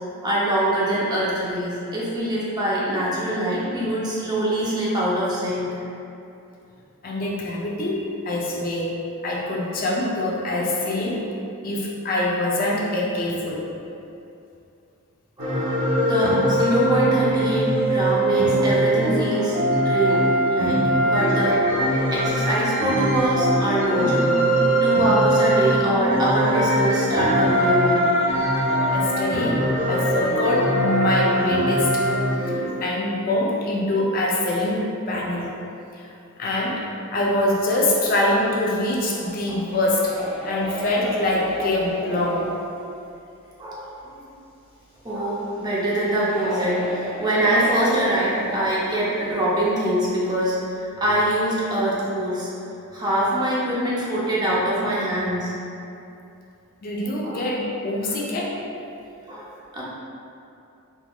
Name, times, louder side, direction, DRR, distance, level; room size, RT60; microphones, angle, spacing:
voice 1, 0.2-5.7 15.4-24.4 24.8-28.1 29.8-29.9 43.6-44.1 45.0-52.5 52.9-55.5 57.2-57.4 58.0-58.1 59.3-59.8, right 1 dB, 20° right, -7 dB, 0.5 m, -24 dB
voice 2, 7.0-8.0 8.2-8.9 9.2-11.2 11.6-13.6 28.9-29.6 29.9-32.0 32.8-35.6 35.9-36.1 36.4-36.8 37.1-40.1 40.4-42.4 56.8-58.6, left 1 dB, 40° left, -4 dB, 0.4 m, -24 dB
sound 1, 15.4-32.7, right 1 dB, 65° right, 0.6 m, -21 dB
sound 2, 38.7-42.7 43.1-43.2 43.4-43.5 45.1-49.5 49.9-50.0, right 1 dB, 5° left, 1.0 m, -34 dB
3.6 x 2.9 x 2.2 m, 2.7 s
head